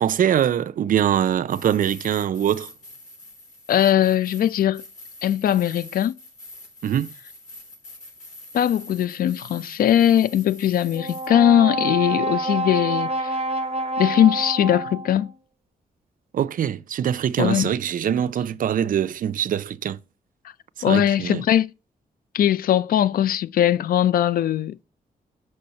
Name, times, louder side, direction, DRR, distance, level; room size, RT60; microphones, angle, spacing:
voice 1, 0.0-2.7 6.8-7.1 16.3-20.0 20.8-21.4, right 9 dB, 65° right, 0.5 m, -23 dB
sound 1, 1.5-11.3, left 2 dB, 60° left, 4.0 m, -44 dB
voice 2, 3.7-4.8 5.2-6.1 8.5-13.3 14.0-15.3 17.4-17.7 20.8-21.7 22.3-24.8, left 11 dB, 80° left, 0.4 m, -20 dB
Brass instrument, 10.9-15.3, right 2 dB, 40° right, 1.2 m, -27 dB
6.3 x 4.3 x 6.4 m
cardioid pair, 110°, 15 cm